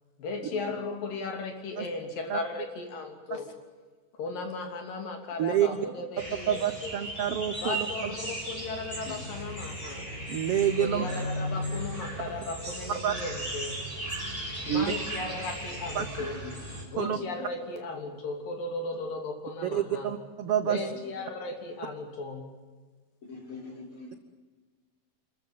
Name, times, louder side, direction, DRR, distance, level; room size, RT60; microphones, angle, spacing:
voice 1, 0.2-3.5 4.2-7.0 7.6-10.2 10.8-13.8 14.5-16.4 16.9-20.1 20.6-22.5, left 3 dB, 75° left, 4 dB, 4.7 m, -36 dB
sound 1, 6.2-16.8, right 1 dB, 15° left, 5.5 m, -36 dB
voice 2, 6.5-7.9 10.3-11.0 13.0-13.1 14.7-14.8 15.9-16.0 17.0-17.2 19.6-20.8, right 10 dB, 70° right, 9 dB, 1.4 m, -27 dB
voice 3, 16.2-17.2 20.9-21.0 23.2-24.2, left 4 dB, 35° left, 1 dB, 5.5 m, -44 dB
27.5 x 14.5 x 9.5 m, 1.4 s
omnidirectional pair, 4.0 m